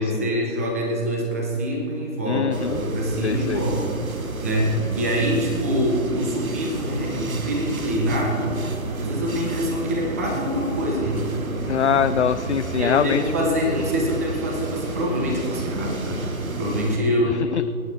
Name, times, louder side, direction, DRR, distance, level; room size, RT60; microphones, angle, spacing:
voice 1, 0.0-4.0 4.4-8.6 9.0-11.4 12.7-17.4, equal, 10° right, -1 dB, 0.8 m, -25 dB
voice 2, 2.3-2.8 3.2-3.6 11.7-13.2, left 8 dB, 55° left, 11 dB, 0.4 m, -23 dB
sound 1, 2.5-17.0, right 3 dB, 80° right, 1.4 m, -31 dB
26.5 x 8.9 x 3.4 m, 2.6 s
figure-of-eight pair, 155°, 41 cm